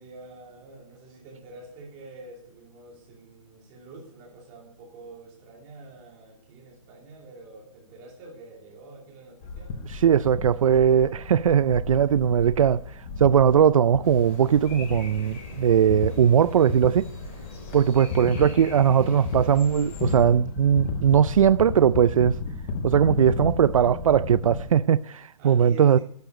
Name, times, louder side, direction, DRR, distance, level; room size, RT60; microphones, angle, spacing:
voice 1, 0.0-9.7 17.9-18.7 25.4-26.0, right 3 dB, 15° right, 2.8 m, -46 dB
sound 1, 9.4-24.7, left 4 dB, 10° left, 0.4 m, -34 dB
voice 2, 9.9-12.8 13.2-17.1 17.7-22.4 22.8-26.0, right 8 dB, 75° right, 0.4 m, -20 dB
sound 2, 14.0-20.2, left 2 dB, 25° left, 3.1 m, -42 dB
11.5 x 6.7 x 9.0 m
hypercardioid pair, 175°, 18 cm